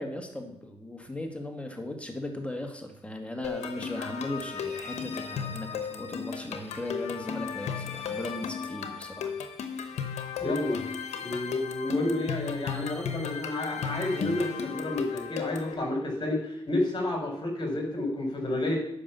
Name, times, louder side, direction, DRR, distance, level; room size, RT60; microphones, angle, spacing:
voice 1, 0.0-9.3, left 1 dB, 10° left, 3 dB, 2.1 m, -37 dB
sound 1, 3.4-15.7, left 7 dB, 90° left, 0.9 m, -35 dB
voice 2, 10.4-10.8 11.2-18.8, left 1 dB, 40° left, 0 dB, 4.6 m, -30 dB
8.6 x 5.8 x 7.0 m, 0.76 s
cardioid pair, 50°, 11 cm